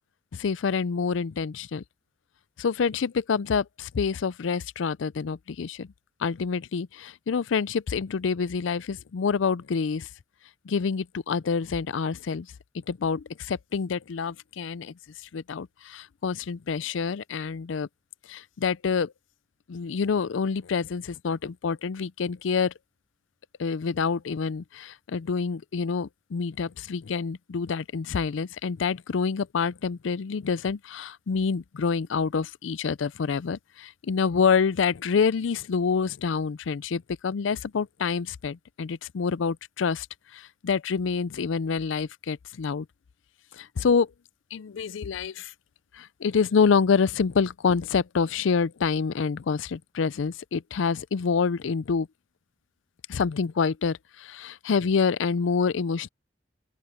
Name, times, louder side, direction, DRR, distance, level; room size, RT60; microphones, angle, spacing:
voice 1, 0.3-1.8 2.6-5.9 6.2-10.1 10.7-12.5 12.7-14.9 15.3-17.9 18.3-19.1 19.7-22.7 23.6-40.1 40.3-42.9 43.5-44.1 44.5-45.5 45.9-52.1 53.1-56.1, left 5 dB, 85° left, 0.4 m, -27 dB
open air
head